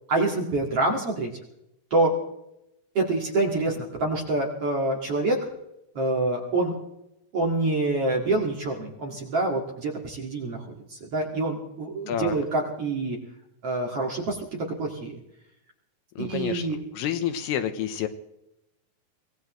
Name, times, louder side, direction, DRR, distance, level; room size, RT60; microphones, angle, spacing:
voice 1, 0.1-1.3 1.9-2.1 2.9-5.4 5.9-6.8 7.3-10.6 10.9-13.2 13.6-14.4 14.8-15.1 16.2-16.8, right 2 dB, 45° right, -1 dB, 2.3 m, -26 dB
voice 2, 16.2-16.7 16.9-18.1, left 9 dB, 80° left, 9 dB, 2.7 m, -28 dB
24.5 x 18.0 x 3.1 m, 0.85 s
omnidirectional pair, 4.9 m